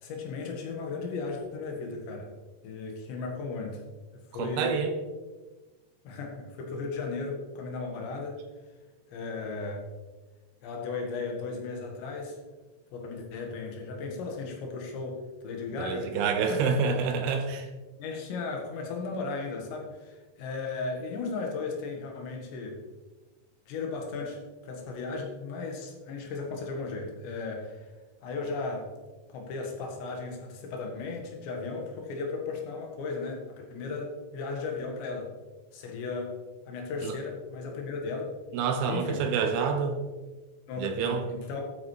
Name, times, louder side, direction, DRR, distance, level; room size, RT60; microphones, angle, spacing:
voice 1, 0.0-2.3 2.6-3.8 4.3-4.8 6.1-8.4 9.1-9.8 10.6-12.4 12.9-16.2 16.5-17.0 18.0-22.8 23.7-27.9 28.2-28.9 29.3-35.3 35.7-36.4 36.7-38.3 38.8-39.3 40.7-41.6, left 4 dB, 80° left, 1 dB, 3.8 m, -36 dB
voice 2, 4.4-5.0 15.8-17.7 37.0-37.2 38.5-40.0 40.8-41.2, right 5 dB, 80° right, 6 dB, 2.4 m, -27 dB
12.0 x 9.1 x 3.2 m, 1.2 s
omnidirectional pair, 5.1 m